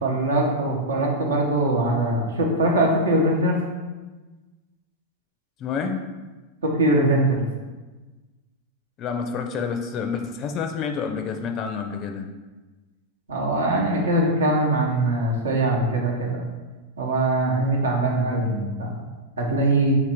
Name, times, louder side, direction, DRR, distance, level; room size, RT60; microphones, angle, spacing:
voice 1, 0.0-3.6 6.6-7.4 13.3-16.4 17.0-18.9 19.4-19.9, right 1 dB, 85° right, 0 dB, 0.8 m, -22 dB
voice 2, 5.6-6.0 9.0-12.3, left 6 dB, 40° left, 5 dB, 0.4 m, -28 dB
2.9 x 2.6 x 4.4 m, 1.2 s
hypercardioid pair, 100°, 0 cm